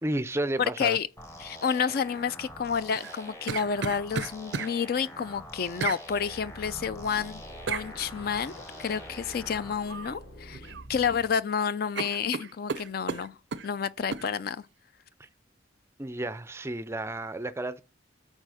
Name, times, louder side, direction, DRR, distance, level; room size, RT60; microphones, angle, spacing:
voice 1, 0.0-1.0 15.2-15.3 16.0-17.8, right 1 dB, 15° right, 0.4 m, -32 dB
voice 2, 0.6-1.1 1.4-7.4 7.7-8.5 8.8-13.3 13.6-14.7, left 6 dB, 50° left, 0.4 m, -30 dB
sound 1, 1.2-9.7, equal, 15° left, 0.8 m, -45 dB
sound 2, 2.9-4.7 5.8-6.0 7.7-7.9 9.9-10.2 10.5-11.2 11.5-11.6 11.9-13.7 14.1-14.3, right 5 dB, 65° right, 0.5 m, -34 dB
sound 3, 6.0-11.3, equal, 80° left, 4.7 m, -47 dB
8.9 x 4.4 x 4.8 m
head